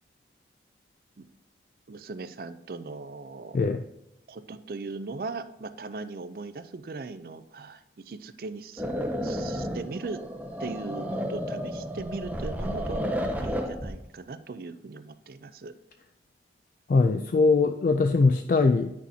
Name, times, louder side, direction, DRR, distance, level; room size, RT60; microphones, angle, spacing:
voice 1, 1.9-3.6 4.3-8.8 9.2-10.2 10.6-15.7, right 3 dB, 55° right, 12 dB, 0.4 m, -39 dB
sound 1, 8.8-13.9, equal, 10° right, 0.6 m, -32 dB
voice 2, 16.9-18.9, left 3 dB, 50° left, 6 dB, 0.3 m, -21 dB
9.5 x 6.2 x 2.8 m, 0.85 s
head